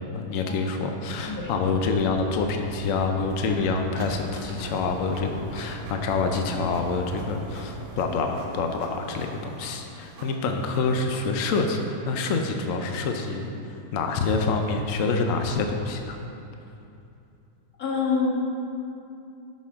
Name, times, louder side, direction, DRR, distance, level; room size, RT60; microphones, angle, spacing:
voice 1, 0.1-16.2, left 4 dB, 75° left, 4 dB, 0.7 m, -27 dB
sound 1, 1.2-8.0, equal, 50° right, 1.8 m, -41 dB
Printer, 3.9-11.8, right 2 dB, 90° right, 2.0 m, -46 dB
voice 2, 17.8-18.3, left 5 dB, 50° left, -4 dB, 1.8 m, -25 dB
13.0 x 6.5 x 3.6 m, 2.7 s
omnidirectional pair, 2.1 m